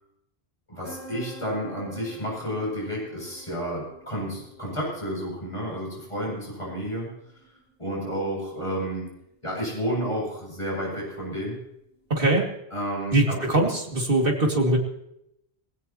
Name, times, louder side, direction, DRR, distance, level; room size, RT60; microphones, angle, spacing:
voice 1, 0.7-7.1 7.8-9.1 9.4-11.6 12.7-13.4, equal, 30° left, -3 dB, 8.2 m, -31 dB
sound 1, 0.8-12.3, right 1 dB, 10° right, 6.2 m, -50 dB
voice 2, 12.1-12.5 13.1-14.8, right 2 dB, 60° right, 0 dB, 2.9 m, -22 dB
20.0 x 17.0 x 3.1 m, 0.79 s
omnidirectional pair, 1.1 m